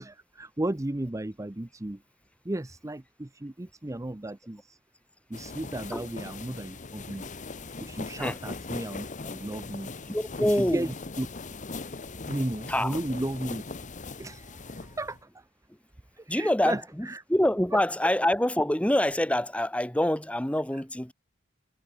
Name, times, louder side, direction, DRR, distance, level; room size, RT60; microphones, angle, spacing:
voice 1, 0.0-2.0 2.4-4.8 5.3-7.3 7.8-9.9 10.6-11.3 12.3-13.6 14.2-15.2 16.2-16.8 17.1-17.2, right 1 dB, 15° right, 0.7 m, -34 dB
sound 1, 5.3-15.2, left 3 dB, 40° left, 1.2 m, -40 dB
voice 2, 10.1-10.9 12.7-13.0 15.7-15.8 16.3-21.1, left 1 dB, 5° left, 1.6 m, -26 dB
head